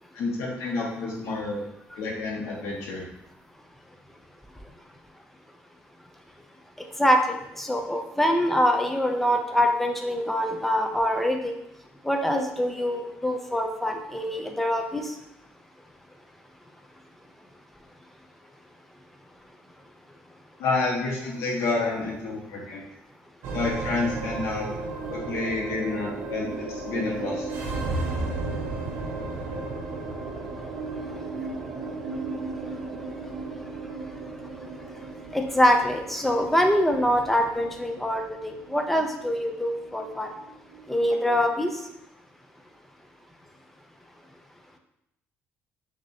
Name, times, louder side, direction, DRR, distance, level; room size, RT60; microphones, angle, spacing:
voice 1, 0.1-1.6 1.9-3.1 20.6-22.8 23.5-24.7 25.1-27.5, left 3 dB, 80° left, -3 dB, 1.3 m, -29 dB
voice 2, 7.0-11.5 12.0-15.1 35.3-40.3 40.9-41.7, equal, 5° left, 3 dB, 0.5 m, -24 dB
sound 1, 23.4-41.9, right 3 dB, 70° right, 0.8 m, -35 dB
6.0 x 2.7 x 2.8 m, 0.83 s
cardioid pair, 145°, 5 cm